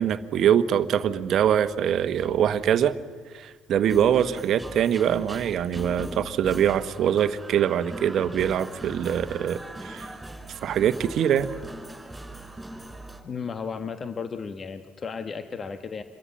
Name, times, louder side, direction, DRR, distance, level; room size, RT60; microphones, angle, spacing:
voice 1, 0.0-2.9 3.3-10.1 10.6-11.5, right 9 dB, 60° right, 12 dB, 1.2 m, -23 dB
sound 1, 3.8-13.2, right 1 dB, 15° right, 5.3 m, -40 dB
voice 2, 13.2-16.0, left 5 dB, 40° left, 9 dB, 1.4 m, -34 dB
27.0 x 22.5 x 7.6 m, 1.5 s
hypercardioid pair, 55°, 0 cm